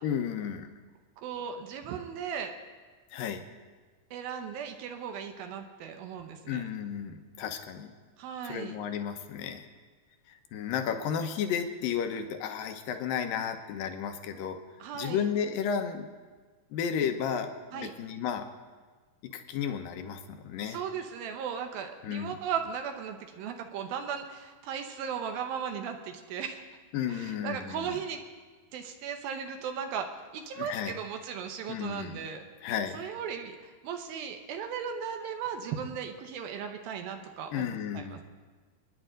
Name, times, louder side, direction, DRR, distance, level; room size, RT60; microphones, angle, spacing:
voice 1, 0.0-0.7 3.1-3.4 6.5-7.9 8.4-9.7 10.5-14.6 14.9-16.1 16.7-18.5 19.3-20.8 22.0-22.4 26.9-28.0 30.6-30.9 31.7-32.3 32.6-33.1 37.5-38.2, left 8 dB, 75° left, 6 dB, 2.6 m, -33 dB
voice 2, 1.2-2.6 4.1-6.7 8.2-8.8 14.8-15.2 17.7-17.9 20.7-26.6 27.1-28.2 28.7-30.1 30.3-32.4 32.9-38.2, right 7 dB, 80° right, 5 dB, 2.7 m, -37 dB
29.0 x 10.0 x 3.9 m, 1.4 s
omnidirectional pair, 4.3 m